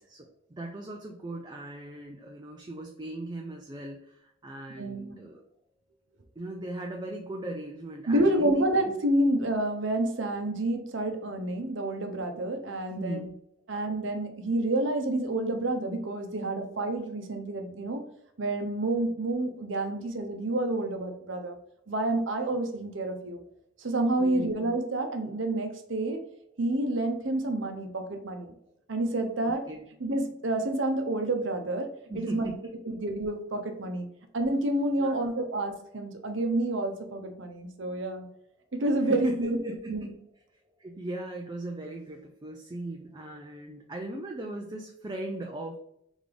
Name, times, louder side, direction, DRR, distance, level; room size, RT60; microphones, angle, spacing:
voice 1, 0.6-5.4 6.4-8.7 13.0-13.4 24.2-24.6 29.4-29.8 32.1-32.6 32.8-32.9 35.0-35.3 38.9-40.1 40.8-45.8, right 1 dB, 20° right, 1 dB, 0.4 m, -38 dB
voice 2, 4.8-5.2 8.1-13.3 13.7-18.0 18.4-21.6 21.9-23.4 23.8-26.2 26.6-28.5 28.9-29.6 30.0-32.5 32.9-34.1 34.3-38.3 38.7-40.1, right 1 dB, 65° right, 5 dB, 0.8 m, -29 dB
3.5 x 3.4 x 3.8 m, 0.73 s
head